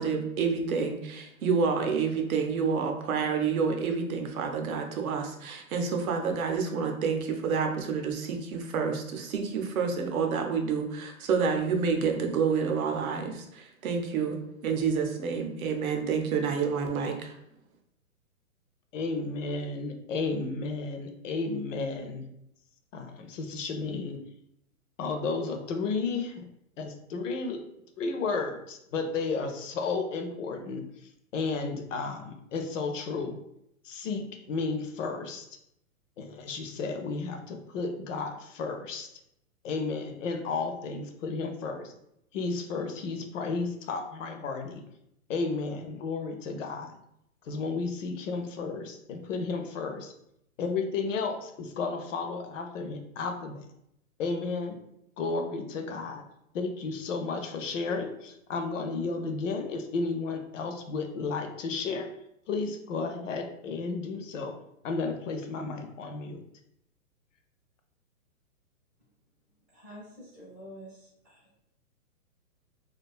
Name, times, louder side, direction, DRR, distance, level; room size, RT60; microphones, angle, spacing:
voice 1, 0.0-17.4, right 5 dB, 75° right, 3 dB, 0.6 m, -29 dB
voice 2, 18.9-22.3 22.9-24.2 25.0-26.5 26.8-27.6 28.0-30.8 31.3-33.4 33.8-35.5 36.2-39.1 39.6-41.9 42.3-44.8 45.3-47.0 47.5-50.1 50.6-53.7 54.2-54.8 55.2-56.2 56.5-62.1 62.5-64.6 64.8-66.4, left 4 dB, 60° left, 5 dB, 0.5 m, -33 dB
voice 3, 69.7-71.4, equal, 5° right, -15 dB, 0.4 m, -47 dB
2.3 x 2.2 x 2.3 m, 0.77 s
hypercardioid pair, 145°, 44 cm